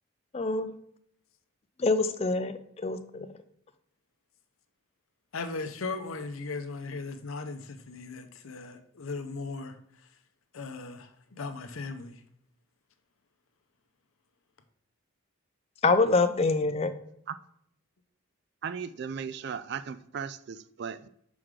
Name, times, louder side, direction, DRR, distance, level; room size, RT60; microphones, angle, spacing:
voice 1, 0.3-0.7 1.8-3.3 15.8-16.9, left 3 dB, 30° left, 0.4 m, -25 dB
voice 2, 5.3-9.8 10.5-12.2, left 3 dB, 80° left, 0.7 m, -37 dB
voice 3, 18.6-21.1, right 6 dB, 50° right, 0.3 m, -37 dB
6.1 x 4.8 x 3.7 m
head